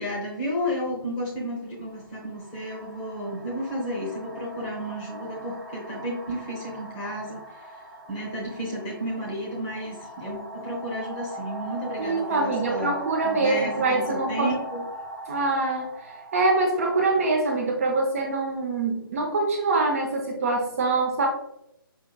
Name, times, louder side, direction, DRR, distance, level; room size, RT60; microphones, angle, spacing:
voice 1, 0.0-7.7 8.1-13.0 13.2-14.8, equal, 15° left, -3 dB, 0.8 m, -32 dB
sound 1, 0.8-1.0 1.9-18.6, equal, 10° right, 0.9 m, -40 dB
voice 2, 12.0-14.6 15.3-16.1 16.3-21.3, right 3 dB, 35° right, 1 dB, 0.6 m, -24 dB
5.1 x 2.4 x 2.3 m, 0.79 s
figure-of-eight pair, 150°, 12 cm